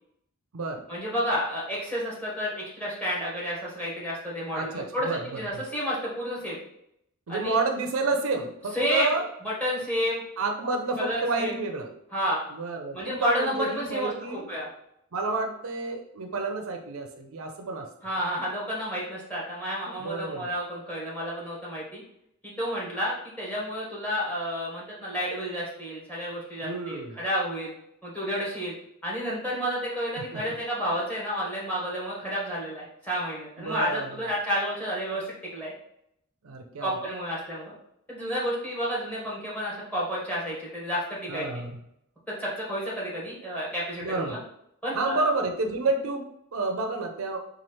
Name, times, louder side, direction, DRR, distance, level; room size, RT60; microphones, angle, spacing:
voice 1, 0.9-6.6 7.3-7.6 8.7-9.1 9.4-10.2 11.0-11.5 12.1-12.4 12.9-14.7 18.0-22.0 22.4-27.7 28.0-28.7 29.0-35.7 36.8-37.7 38.1-41.6 42.4-44.4 44.8-45.2, equal, 10° left, -6 dB, 1.2 m, -30 dB
voice 2, 4.5-5.4 7.3-9.2 10.4-11.9 12.5-14.5 15.1-17.9 20.0-20.5 26.6-27.1 30.3-30.4 33.6-34.2 36.4-36.9 41.3-41.8 44.0-44.4 44.9-47.4, right 3 dB, 75° right, 4 dB, 0.5 m, -30 dB
4.2 x 2.4 x 3.1 m, 0.75 s
head